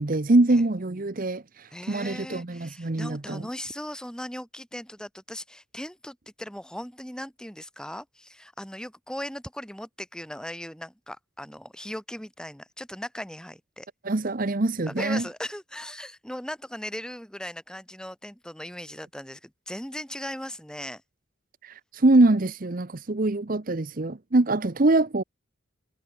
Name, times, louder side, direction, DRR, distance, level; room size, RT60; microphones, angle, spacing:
voice 1, 0.0-3.4 14.0-15.2 21.6-25.2, right 2 dB, 45° right, 0.8 m, -23 dB
voice 2, 1.7-13.9 14.9-21.0, equal, 5° left, 2.2 m, -38 dB
head